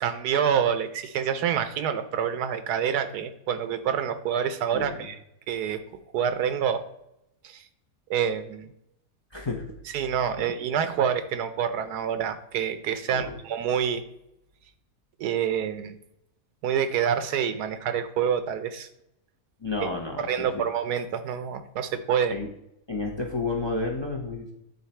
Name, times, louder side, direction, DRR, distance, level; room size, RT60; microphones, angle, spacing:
voice 1, 0.0-5.2 5.5-5.8 6.1-6.8 7.4-7.6 8.1-8.7 9.9-14.0 15.2-16.0 16.6-18.9 19.8-19.9 20.2-22.4, right 8 dB, 75° right, 10 dB, 1.1 m, -27 dB
voice 2, 9.3-9.6 13.1-13.4 19.6-20.6 22.3-22.5 22.9-24.5, left 3 dB, 30° left, 0 dB, 0.5 m, -31 dB
8.2 x 3.9 x 4.3 m, 0.81 s
omnidirectional pair, 1.7 m